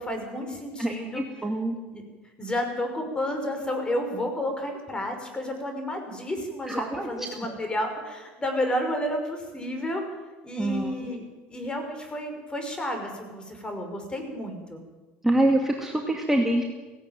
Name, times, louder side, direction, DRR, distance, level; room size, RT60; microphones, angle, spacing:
voice 1, 0.0-1.2 1.9-10.0 10.4-11.2 11.5-14.8, left 1 dB, 20° left, 5 dB, 5.8 m, -31 dB
voice 2, 0.8-1.8 6.7-7.1 10.6-10.9 15.2-16.6, right 1 dB, 5° right, 1 dB, 2.4 m, -25 dB
17.0 x 17.0 x 9.2 m, 1.2 s
supercardioid pair, 90°, 5 cm